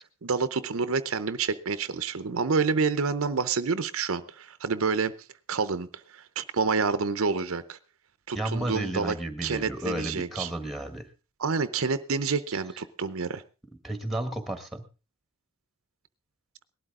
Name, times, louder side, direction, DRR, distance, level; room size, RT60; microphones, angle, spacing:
voice 1, 0.2-5.1 5.5-7.8 8.3-9.1 9.4-10.5 11.4-13.4, right 4 dB, 70° right, 0.7 m, -28 dB
voice 2, 8.3-11.1 13.8-14.8, right 1 dB, ahead, 1.5 m, -32 dB
18.5 x 12.0 x 3.7 m
head